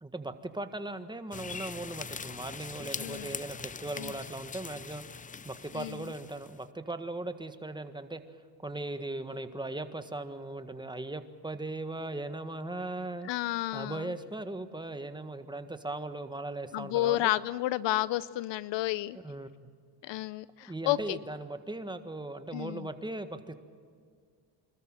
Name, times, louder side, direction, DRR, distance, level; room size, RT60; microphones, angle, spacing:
voice 1, 0.0-5.0 5.4-8.2 8.6-13.3 13.7-17.3 19.2-19.5 20.6-23.5, right 2 dB, 10° right, 9 dB, 1.6 m, -38 dB
sound 1, 1.3-6.6, left 6 dB, 20° left, 0.5 m, -42 dB
voice 2, 3.0-3.4 4.0-4.1 5.7-6.0 13.2-14.1 16.7-19.2 20.0-21.2 22.5-22.9, left 16 dB, 65° left, 19 dB, 0.7 m, -31 dB
25.5 x 13.5 x 9.1 m, 2.1 s
supercardioid pair, 85°, 46 cm